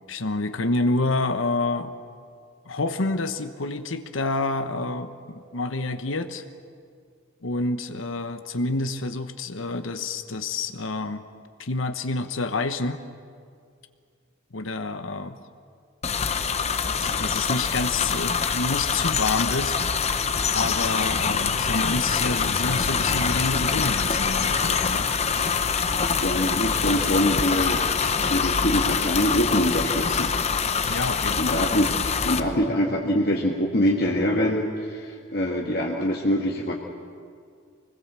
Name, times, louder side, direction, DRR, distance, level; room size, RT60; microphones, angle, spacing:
voice 1, 0.1-1.9 2.7-6.4 7.4-11.2 11.6-13.0 14.5-15.4 16.6-19.8 20.5-25.1 30.9-31.7, left 2 dB, 80° left, 9 dB, 1.1 m, -28 dB
sound 1, 16.0-32.4, left 6 dB, 35° left, 0.8 m, -24 dB
voice 2, 26.2-27.9 28.3-30.3 31.4-36.7, equal, 55° left, -1 dB, 1.7 m, -24 dB
25.5 x 20.5 x 7.5 m, 2.2 s
head